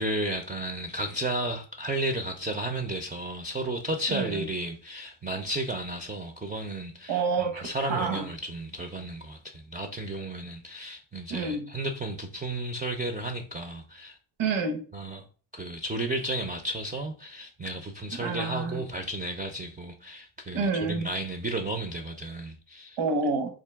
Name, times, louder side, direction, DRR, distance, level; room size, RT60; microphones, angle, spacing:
voice 1, 0.0-14.2 14.9-15.2 15.5-23.0, right 1 dB, 20° right, 0.3 m, -33 dB
voice 2, 4.1-4.5 7.1-8.2 11.3-11.7 14.4-14.8 18.1-18.8 20.5-21.1 23.0-23.5, right 4 dB, 85° right, 0.9 m, -28 dB
3.7 x 2.6 x 3.4 m
wide cardioid pair, 110°, 47 cm